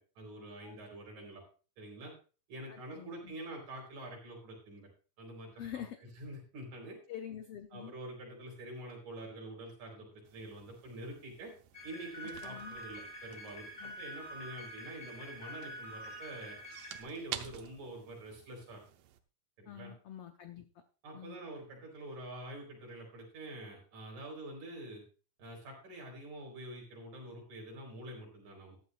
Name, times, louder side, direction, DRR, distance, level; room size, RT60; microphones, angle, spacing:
voice 1, 0.2-1.4 1.8-2.1 2.5-4.9 5.2-5.8 6.2-7.0 7.7-11.5 11.8-16.6 17.0-18.8 19.6-19.9 21.0-25.0 25.4-28.8, right 1 dB, 60° right, 0 dB, 5.7 m, -46 dB
voice 2, 2.7-3.3 5.5-6.0 7.1-7.9 12.4-12.8 13.8-14.0 19.7-20.7 21.1-21.4, left 10 dB, 80° left, 7 dB, 1.3 m, -46 dB
sound 1, 10.2-19.2, right 11 dB, 85° right, 2.5 m, -51 dB
sound 2, 11.7-17.0, equal, 25° left, 5.3 m, -46 dB
15.0 x 11.5 x 2.6 m, 0.35 s
omnidirectional pair, 3.8 m